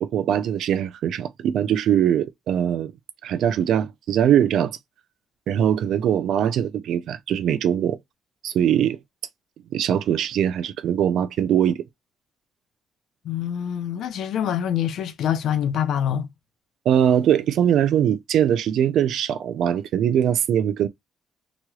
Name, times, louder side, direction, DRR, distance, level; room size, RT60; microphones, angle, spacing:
voice 1, 0.0-2.9 3.2-4.8 5.5-8.0 8.4-9.0 9.7-11.8 16.9-20.9, right 9 dB, 75° right, 0.4 m, -21 dB
voice 2, 13.2-16.3, left 9 dB, 75° left, 0.5 m, -25 dB
3.0 x 2.3 x 3.0 m
cardioid pair, 90°, 0 cm